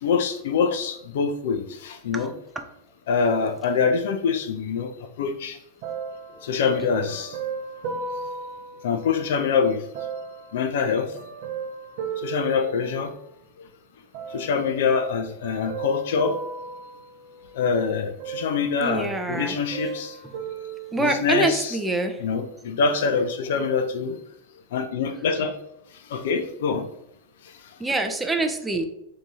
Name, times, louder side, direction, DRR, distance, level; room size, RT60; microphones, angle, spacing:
voice 1, 0.0-2.3 3.1-4.9 5.2-5.6 6.4-7.4 8.8-9.8 10.5-11.1 12.2-13.1 14.3-16.4 17.5-20.2 21.0-21.8 22.2-24.2 24.7-25.5 26.1-26.9, left 5 dB, 55° left, 8 dB, 0.4 m, -24 dB
sound 1, 5.8-9.4 9.9-13.5 14.1-14.8 15.4-17.7 18.2-19.2 19.5-21.5 22.2-22.3, right 5 dB, 50° right, 0.7 m, -36 dB
voice 2, 18.8-19.5 20.9-22.2 27.8-28.9, right 2 dB, 10° right, 5 dB, 0.5 m, -25 dB
3.4 x 2.8 x 4.0 m, 0.77 s
figure-of-eight pair, 90°, 0 cm